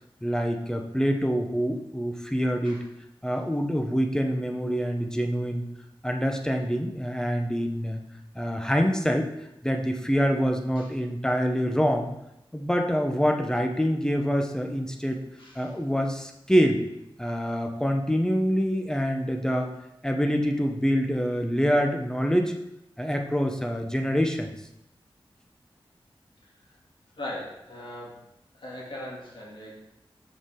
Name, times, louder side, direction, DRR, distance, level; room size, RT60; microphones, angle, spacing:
voice 1, 0.2-2.8 3.2-5.6 6.0-8.0 8.3-9.3 9.6-12.1 12.5-15.2 15.5-16.8 17.2-19.7 20.0-22.6 23.0-24.5, equal, 5° left, 3 dB, 1.0 m, -25 dB
voice 2, 15.4-15.7 27.1-28.2 28.5-29.8, left 1 dB, 60° left, -6 dB, 2.8 m, -39 dB
7.1 x 5.2 x 3.8 m, 0.85 s
cardioid pair, 55°, 10 cm